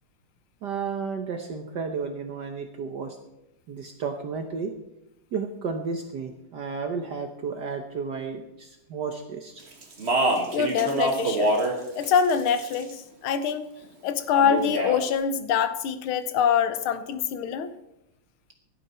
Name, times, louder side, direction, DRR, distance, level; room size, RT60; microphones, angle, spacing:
voice 1, 0.6-3.2 3.7-4.7 5.3-9.6, right 5 dB, 60° right, 5 dB, 1.5 m, -32 dB
Speech, 9.8-11.8 12.0-12.9 14.3-15.0, right 1 dB, 30° right, 2.0 m, -25 dB
voice 2, 10.5-11.6 12.0-13.7 14.0-17.7, left 7 dB, 80° left, 11 dB, 1.8 m, -24 dB
17.0 x 12.0 x 4.3 m, 0.86 s
omnidirectional pair, 2.3 m